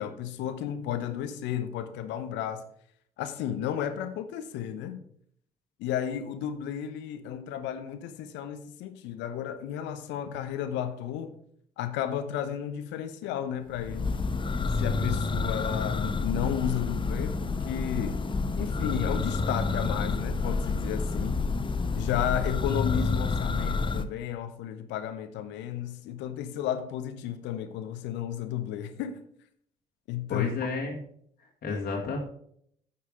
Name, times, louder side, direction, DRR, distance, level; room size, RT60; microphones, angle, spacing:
voice 1, 0.0-2.6 3.2-5.0 5.8-11.3 11.8-14.2 14.8-18.2 18.6-21.4 21.9-29.2 30.1-30.5 31.7-32.1, left 10 dB, 65° left, 0.9 m, -33 dB
Church bell, 13.7-24.0, left 4 dB, 25° left, 0.8 m, -29 dB
voice 2, 30.3-31.0 31.6-32.2, left 4 dB, 45° left, 1.9 m, -31 dB
9.7 x 5.8 x 5.0 m
figure-of-eight pair, 50°, 20 cm